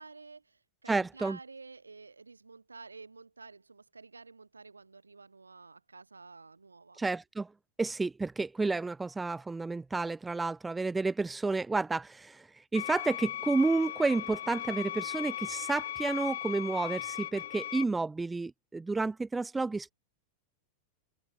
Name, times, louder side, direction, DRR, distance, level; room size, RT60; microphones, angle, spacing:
voice 1, 0.0-7.0, right 4 dB, 80° right, 3.7 m, -51 dB
voice 2, 0.9-1.4 7.0-7.5 7.8-19.9, right 3 dB, 10° right, 0.4 m, -31 dB
sound 1, 12.7-17.8, left 12 dB, 60° left, 0.3 m, -37 dB
figure-of-eight pair, 90°, 0 cm